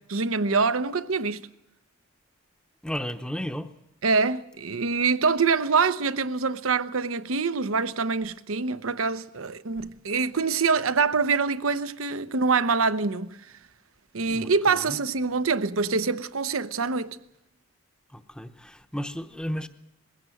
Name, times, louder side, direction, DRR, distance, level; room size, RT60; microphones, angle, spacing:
voice 1, 0.1-1.4 4.0-13.4 14.1-17.2, right 4 dB, 80° right, 0.9 m, -25 dB
voice 2, 2.8-3.7 9.8-9.9 14.3-15.0 18.1-19.7, equal, 5° left, 0.8 m, -34 dB
21.0 x 16.5 x 7.8 m
head